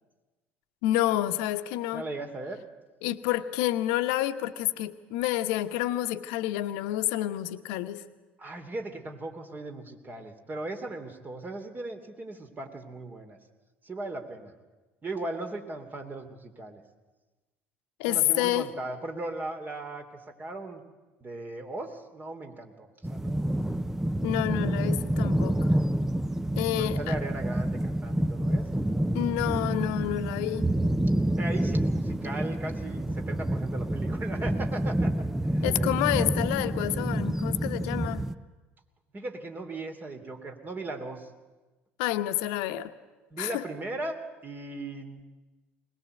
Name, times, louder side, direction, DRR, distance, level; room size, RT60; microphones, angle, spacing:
voice 1, 0.8-2.0 3.0-8.0 18.0-18.7 24.2-25.7 26.6-27.1 29.1-30.7 35.6-38.2 42.0-42.9 43.4-43.6, left 14 dB, 70° left, 10 dB, 1.1 m, -29 dB
voice 2, 1.9-2.6 8.4-13.4 13.8-14.5 15.0-16.8 18.1-20.0 20.4-20.8 21.2-23.5 26.7-28.9 31.4-36.0 39.1-41.3 43.3-44.2 44.4-45.3, right 2 dB, 30° right, 5 dB, 3.1 m, -38 dB
sound 1, 23.0-38.4, right 1 dB, 5° right, 0.8 m, -28 dB
21.0 x 20.0 x 8.0 m, 1.2 s
hypercardioid pair, 65°, 6 cm